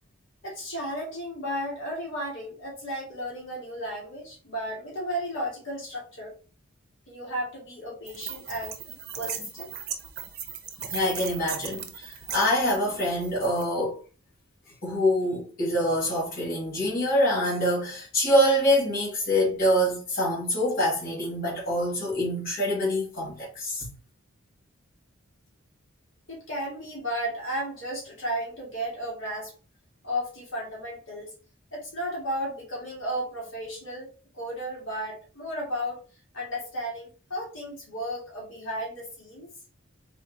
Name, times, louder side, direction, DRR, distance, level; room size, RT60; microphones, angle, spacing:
voice 1, 0.4-6.4 7.1-8.8 9.2-9.7 26.3-29.5 30.0-31.3 31.7-36.0 36.3-39.5, equal, 70° left, 2.2 m, -34 dB
sound 1, 8.1-13.6, right 8 dB, 50° right, 0.8 m, -38 dB
voice 2, 10.8-14.0 14.8-23.9, equal, 45° left, 2.2 m, -25 dB
4.2 x 3.2 x 3.9 m
head